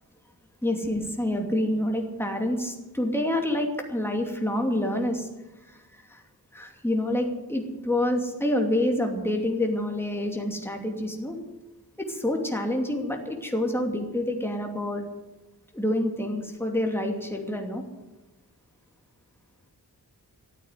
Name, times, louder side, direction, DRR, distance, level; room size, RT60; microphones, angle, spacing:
voice 1, 0.6-5.3 5.6-6.2 6.5-11.4 12.0-15.0 15.7-17.8, left 1 dB, 5° left, 2 dB, 2.6 m, -27 dB
14.0 x 8.9 x 9.6 m, 1.0 s
wide cardioid pair, 85°, 39 cm